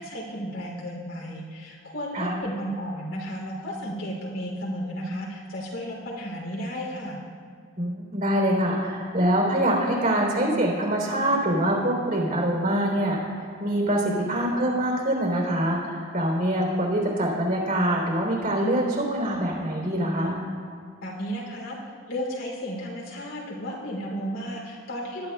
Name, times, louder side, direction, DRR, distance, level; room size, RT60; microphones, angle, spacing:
voice 1, 0.0-7.2 21.0-21.8 22.1-25.3, equal, 80° left, -2 dB, 3.1 m, -33 dB
voice 2, 7.8-20.4, right 1 dB, 45° right, -1 dB, 3.5 m, -24 dB
20.0 x 11.0 x 2.3 m, 2.1 s
head